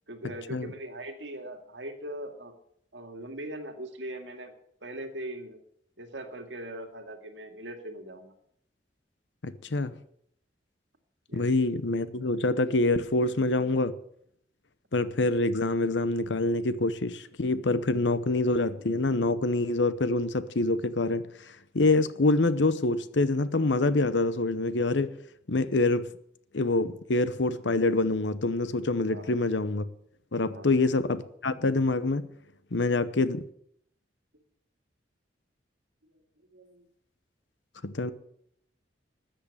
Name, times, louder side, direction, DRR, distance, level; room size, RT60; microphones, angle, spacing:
voice 1, 0.1-2.5 2.9-4.5 4.8-5.6 6.0-8.3 11.3-11.5 29.1-29.4 30.5-30.7 36.5-36.8, right 1 dB, 85° right, 2.2 m, -40 dB
voice 2, 9.4-9.9 11.3-13.9 14.9-21.3 21.7-25.1 25.5-26.1 26.5-29.8 30.3-32.3 32.7-33.4 37.8-38.1, left 2 dB, 80° left, 0.9 m, -26 dB
13.5 x 7.9 x 8.5 m
head